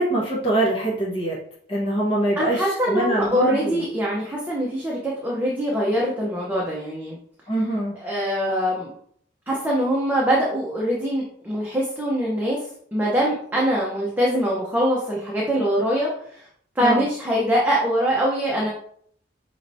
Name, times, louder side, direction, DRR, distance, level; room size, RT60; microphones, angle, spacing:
voice 1, 0.0-1.4 1.7-3.9 7.5-7.9 16.8-17.1, right 1 dB, 30° left, -6 dB, 1.0 m, -23 dB
voice 2, 2.4-7.2 8.0-8.9 9.5-12.6 12.9-16.4 16.8-18.7, equal, 10° right, -4 dB, 0.7 m, -23 dB
5.7 x 3.1 x 2.7 m, 0.63 s
head